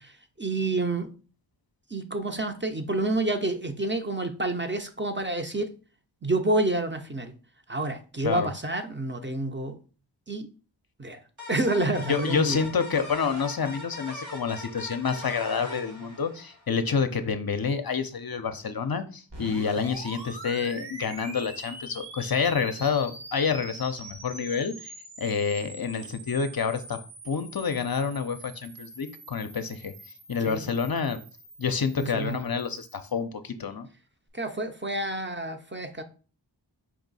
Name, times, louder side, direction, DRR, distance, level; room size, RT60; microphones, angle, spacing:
voice 1, 0.1-1.1 1.9-5.7 6.2-7.3 7.7-9.8 10.3-10.5 11.0-11.2 11.5-12.7 19.6-19.9 30.4-30.7 32.0-32.4 34.3-36.0, right 2 dB, 25° right, 0.6 m, -29 dB
sound 1, 11.4-16.8, left 2 dB, 85° right, 1.9 m, -41 dB
voice 2, 12.1-27.0 27.2-29.9 30.3-31.2 31.6-33.9, left 6 dB, 50° left, 0.5 m, -28 dB
sound 2, 19.3-33.2, right 2 dB, 65° right, 1.3 m, -44 dB
4.8 x 2.7 x 3.9 m
wide cardioid pair, 50°, 45 cm